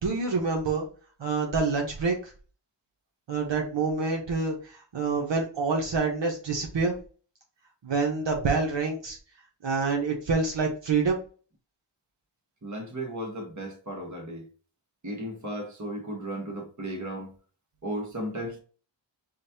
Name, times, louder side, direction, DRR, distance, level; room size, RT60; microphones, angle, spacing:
voice 1, 0.0-0.8 1.2-2.3 3.3-7.0 7.8-9.2 9.6-11.2, right 4 dB, 70° right, 0.9 m, -27 dB
voice 2, 12.6-14.5 15.0-17.3 17.8-18.6, right 1 dB, 40° right, 1.3 m, -35 dB
5.1 x 2.3 x 2.7 m
wide cardioid pair, 85°, 45 cm